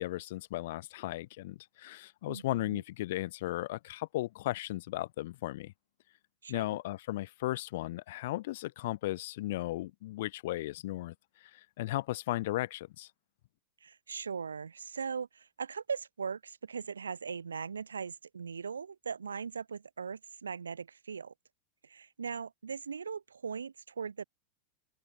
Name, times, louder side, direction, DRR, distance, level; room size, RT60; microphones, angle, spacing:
voice 1, 0.0-5.7 6.5-11.1 11.4-13.1, left 17 dB, 55° left, 0.5 m, -36 dB
voice 2, 2.3-2.8 6.4-6.7 13.8-21.3 21.8-24.2, right 6 dB, 70° right, 0.8 m, -39 dB
open air
figure-of-eight pair, 90°, 0 cm